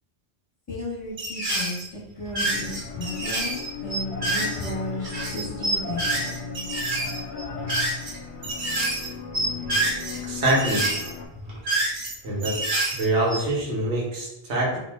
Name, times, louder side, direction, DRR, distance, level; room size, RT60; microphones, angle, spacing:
voice 1, 0.7-6.3, left 1 dB, 25° left, -8 dB, 0.8 m, -34 dB
sound 1, 1.2-1.9 2.2-4.7 5.0-8.2 8.4-9.1 9.3-10.2 10.4-12.1 12.4-13.6, right 2 dB, 50° right, 0.9 m, -28 dB
sound 2, 2.4-11.3, left 4 dB, 80° left, 0.8 m, -36 dB
voice 2, 10.2-10.9 12.2-12.6 12.9-14.8, right 1 dB, 85° right, -3 dB, 1.2 m, -24 dB
2.6 x 2.1 x 3.2 m, 0.85 s
omnidirectional pair, 1.1 m